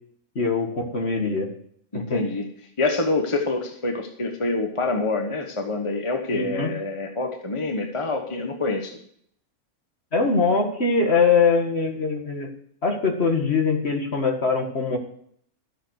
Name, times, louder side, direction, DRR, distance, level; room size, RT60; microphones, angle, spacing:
voice 1, 0.4-1.5 1.9-2.3 6.3-6.7 10.1-12.5 12.8-15.0, left 4 dB, 45° left, 3 dB, 2.2 m, -22 dB
voice 2, 1.9-2.5 2.8-9.0, left 3 dB, 20° left, 3 dB, 1.2 m, -26 dB
13.0 x 7.7 x 6.5 m, 0.65 s
omnidirectional pair, 1.5 m